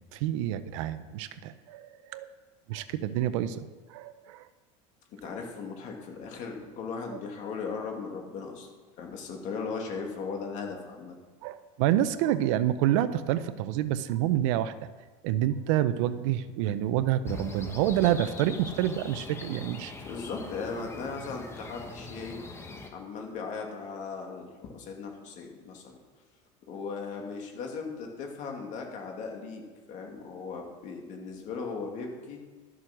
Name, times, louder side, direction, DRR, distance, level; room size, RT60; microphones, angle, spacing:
voice 1, 0.1-2.3 2.7-4.4 11.4-14.7 15.2-19.9, right 12 dB, 75° right, 13 dB, 0.7 m, -28 dB
voice 2, 5.2-8.7 9.0-11.1 20.1-22.4 22.9-26.0 26.7-29.6 29.9-32.4, left 5 dB, 50° left, 1 dB, 2.6 m, -37 dB
sound 1, 17.2-22.9, left 3 dB, 15° left, 1.2 m, -42 dB
12.5 x 7.4 x 6.1 m, 1.4 s
supercardioid pair, 135°, 16 cm